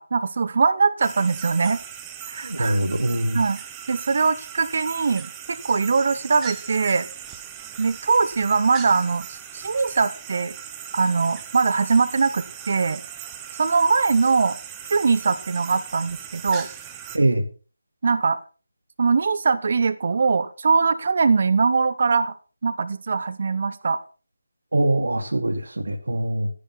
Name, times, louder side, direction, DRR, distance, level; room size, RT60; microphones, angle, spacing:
voice 1, 0.0-1.8 2.3-2.8 3.3-3.6 3.9-7.1 7.8-10.5 10.9-13.0 13.6-14.6 14.9-16.7 18.0-18.4 19.0-22.3 22.6-24.0, right 4 dB, 45° right, 15 dB, 0.8 m, -21 dB
sound 1, 1.0-17.2, right 9 dB, 10° right, 0.9 m, -39 dB
voice 2, 2.4-3.4 17.1-17.5 24.7-26.5, right 1 dB, 65° right, 7 dB, 2.2 m, -23 dB
12.0 x 10.5 x 4.3 m, 0.35 s
figure-of-eight pair, 155°, 0 cm